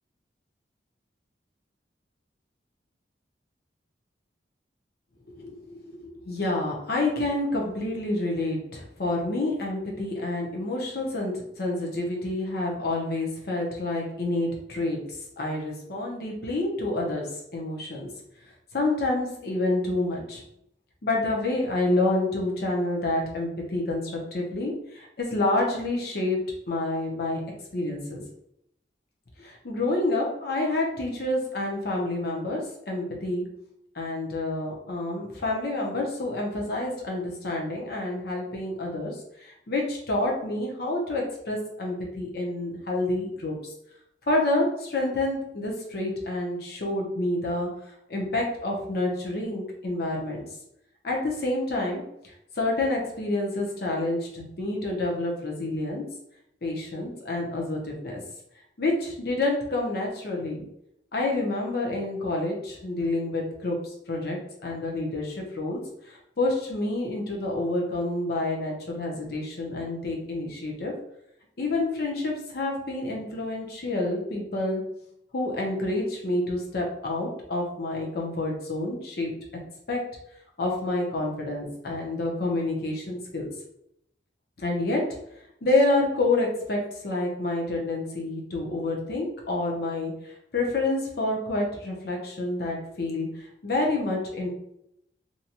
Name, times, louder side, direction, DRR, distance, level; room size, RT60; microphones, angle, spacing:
voice 1, 5.4-18.1 18.7-20.4 21.0-27.4 27.7-28.2 29.4-33.5 33.9-43.7 44.3-47.7 48.1-50.4 51.0-56.0 56.6-58.2 58.8-60.7 61.1-65.8 66.1-70.9 71.6-74.8 75.3-79.3 79.9-80.0 80.6-83.5 84.6-85.2 85.6-93.3 93.6-94.5, left 2 dB, 55° left, -1 dB, 0.7 m, -28 dB
2.7 x 2.3 x 2.8 m, 0.78 s
head